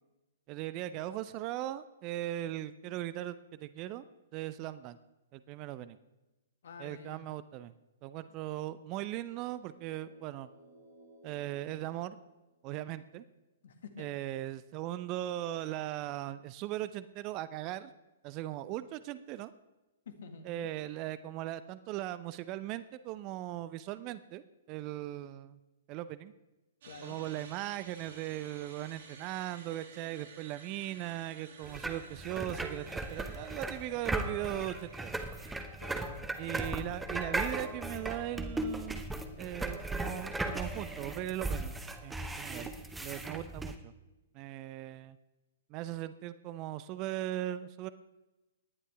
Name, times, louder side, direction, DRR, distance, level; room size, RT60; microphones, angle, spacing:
voice 1, 0.5-4.0 4.3-5.0 5.3-6.0 6.8-7.7 8.0-10.5 11.2-12.2 12.6-13.2 14.0-17.9 18.2-19.5 20.4-25.6 25.9-26.3 27.0-35.2 36.4-41.8 42.0-42.7 43.0-43.9 44.3-45.2 45.7-47.9, right 14 dB, 35° right, 15 dB, 0.6 m, -39 dB
voice 2, 6.6-7.3 13.6-14.2 20.1-20.7 26.8-27.2 35.8-36.3, left 5 dB, 60° left, 7 dB, 1.8 m, -49 dB
sound 1, 9.2-13.0, right 2 dB, 80° left, 3.5 m, -59 dB
sound 2, 26.8-35.7, right 5 dB, 55° right, 2.4 m, -54 dB
sound 3, 31.6-43.8, right 2 dB, 5° right, 1.1 m, -37 dB
18.5 x 11.0 x 3.4 m, 1.0 s
figure-of-eight pair, 115°, 0 cm